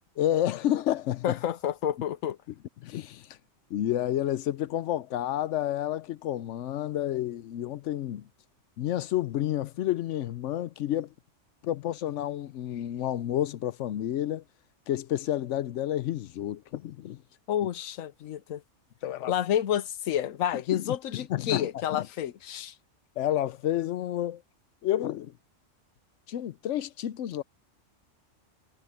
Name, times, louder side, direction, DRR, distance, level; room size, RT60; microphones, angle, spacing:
voice 1, 0.2-1.4 2.8-3.4 3.7-8.3 8.8-11.1 11.6-14.4 14.9-17.2 19.0-19.3 20.7-22.1 23.2-24.4 24.8-25.4 26.3-27.4, left 12 dB, 70° left, 0.9 m, -30 dB
voice 2, 1.2-2.4 17.5-18.6 19.3-22.7, left 10 dB, 85° left, 1.2 m, -29 dB
omnidirectional pair, 1.3 m